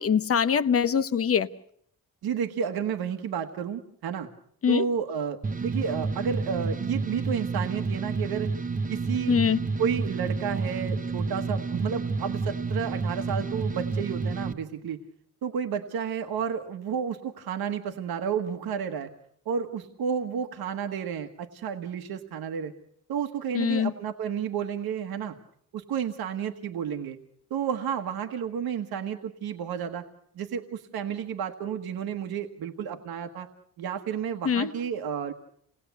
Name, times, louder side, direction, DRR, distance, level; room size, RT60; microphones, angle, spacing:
voice 1, 0.0-1.5 4.6-4.8 9.3-9.6 23.5-23.9 34.4-34.7, left 7 dB, 40° left, 1.0 m, -23 dB
voice 2, 2.2-4.3 4.7-8.5 8.9-9.4 9.8-15.0 15.4-19.1 19.4-22.7 23.1-25.4 25.7-27.2 27.5-30.1 30.3-33.5 33.8-35.3, right 7 dB, 85° right, 1.5 m, -31 dB
sound 1, 5.4-14.5, right 4 dB, 20° right, 1.0 m, -30 dB
28.5 x 19.0 x 8.2 m
wide cardioid pair, 175°, 36 cm